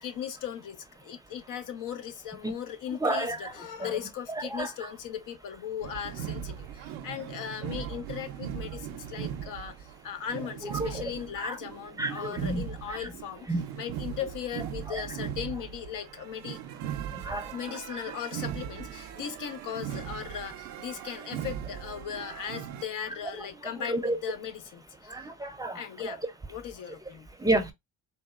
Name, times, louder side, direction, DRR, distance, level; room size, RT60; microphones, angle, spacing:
voice 1, 0.0-13.5 13.8-16.6 17.5-25.3 25.7-26.2 26.5-27.3, left 9 dB, 65° left, 0.7 m, -38 dB
voice 2, 3.0-3.5 3.8-3.9 4.4-4.9 10.6-11.0 11.4-11.6 12.0-13.1 13.5-13.6 14.9-15.0 17.1-18.1 23.3-23.5 23.8-24.2 25.0-26.2 27.4-27.7, right 2 dB, 10° right, 0.6 m, -31 dB
sound 1, 5.8-22.9, right 10 dB, 85° right, 0.5 m, -39 dB
4.0 x 2.2 x 2.4 m
supercardioid pair, 75°, 35 cm